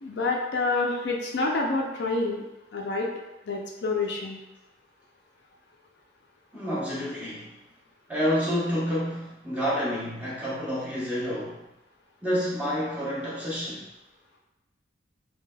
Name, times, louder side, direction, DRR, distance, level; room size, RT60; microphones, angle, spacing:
voice 1, 0.0-2.4 2.7-3.1 3.5-4.4, left 3 dB, 60° left, 0 dB, 0.4 m, -27 dB
voice 2, 6.5-7.5 8.1-11.6 12.2-13.9, equal, 10° right, -8 dB, 0.8 m, -29 dB
3.2 x 2.8 x 2.2 m, 0.97 s
head